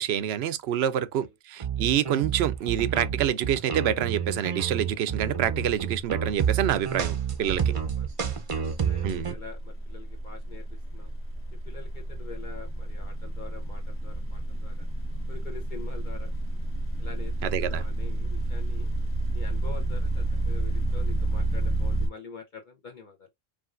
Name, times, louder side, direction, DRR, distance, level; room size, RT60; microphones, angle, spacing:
voice 1, 0.0-7.7 9.0-9.3 17.4-17.8, right 10 dB, 85° right, 0.8 m, -27 dB
sound 1, 1.6-9.3, right 7 dB, 40° right, 0.6 m, -29 dB
sound 2, 5.3-5.7 5.9-22.1, right 1 dB, 15° left, 1.2 m, -30 dB
voice 2, 7.7-10.6 10.9-11.1 11.7-14.9 15.3-16.3 17.0-17.3 17.6-18.9 19.3-23.3, left 5 dB, 50° left, 0.9 m, -45 dB
4.9 x 3.3 x 2.5 m
omnidirectional pair, 1.0 m